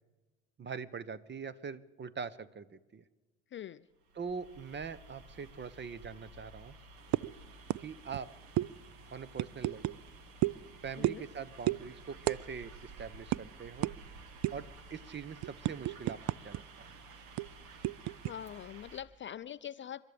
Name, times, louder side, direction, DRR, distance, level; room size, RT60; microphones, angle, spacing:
voice 1, 0.6-3.0 4.2-6.7 7.8-8.3 9.1-10.0 10.8-13.9 14.5-16.9, right 6 dB, 30° right, 17 dB, 0.9 m, -43 dB
voice 2, 3.5-3.9 11.0-11.3 18.2-20.0, left 10 dB, 35° left, 15 dB, 0.4 m, -43 dB
sound 1, 3.9-19.0, right 2 dB, 65° right, 1.7 m, -53 dB
sound 2, 7.1-7.3 7.7-7.8 8.1-8.2 8.6-8.7 9.4-10.0 10.4-10.6 11.0-11.3 11.7-11.8 12.3-12.4 12.7-12.8 13.3-13.4 13.8-14.0 14.4-14.7 15.1-16.6 16.9-17.0 17.4-18.3, right 17 dB, 50° right, 0.4 m, -31 dB
29.5 x 12.5 x 3.4 m, 1.2 s
hypercardioid pair, 60°, 37 cm